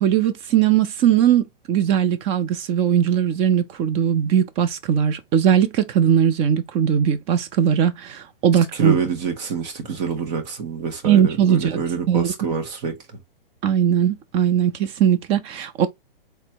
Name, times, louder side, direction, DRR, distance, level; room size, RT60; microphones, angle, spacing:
voice 1, 0.0-9.0 11.0-11.8 12.1-12.5 13.6-15.9, right 9 dB, 20° right, 0.5 m, -19 dB
voice 2, 8.7-13.0, right 5 dB, 45° right, 1.9 m, -26 dB
4.2 x 3.3 x 2.9 m
hypercardioid pair, 145°, 29 cm